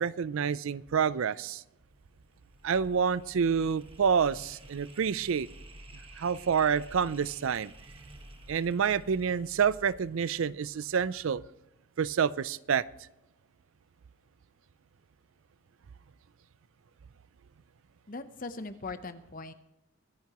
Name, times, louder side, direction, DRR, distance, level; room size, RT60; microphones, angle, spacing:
voice 1, 0.0-1.6 2.6-5.5 6.2-7.7 8.5-11.4 12.0-12.8, right 6 dB, 75° right, 19 dB, 0.4 m, -28 dB
sound 1, 1.7-10.9, right 1 dB, 25° right, 1.3 m, -51 dB
voice 2, 18.1-19.5, left 3 dB, 40° left, 11 dB, 0.8 m, -40 dB
23.5 x 10.5 x 3.0 m, 0.93 s
head